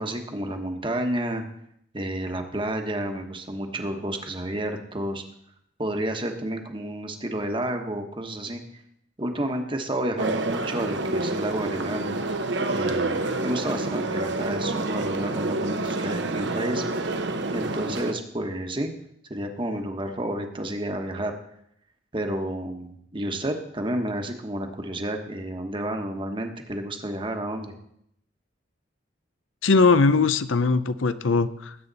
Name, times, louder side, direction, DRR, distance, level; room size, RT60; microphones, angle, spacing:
voice 1, 0.0-1.4 1.9-5.2 5.8-8.6 9.2-12.1 12.7-16.8 17.5-18.9 19.3-21.3 22.1-27.7, right 1 dB, 25° right, 5 dB, 1.2 m, -30 dB
sound 1, 10.2-18.1, right 2 dB, 60° right, 1.0 m, -28 dB
voice 2, 29.6-31.7, left 4 dB, 80° left, 13 dB, 0.7 m, -20 dB
19.0 x 8.7 x 4.1 m, 0.74 s
head